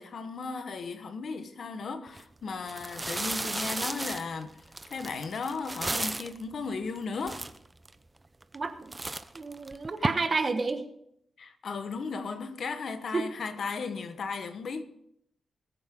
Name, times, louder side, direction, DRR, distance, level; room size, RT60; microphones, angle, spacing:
voice 1, 0.0-4.5 4.9-7.4 11.4-14.8, left 4 dB, 65° left, 1.2 m, -36 dB
sound 1, 2.1-2.2 2.7-6.4 7.0-7.1 7.2-7.9 8.4-8.7 8.9-10.1, right 2 dB, 20° right, 0.7 m, -34 dB
voice 2, 8.5-8.9 9.3-10.8 13.1-13.2, right 3 dB, 35° right, 1.4 m, -30 dB
21.0 x 9.2 x 3.8 m
cardioid pair, 100°, 0 cm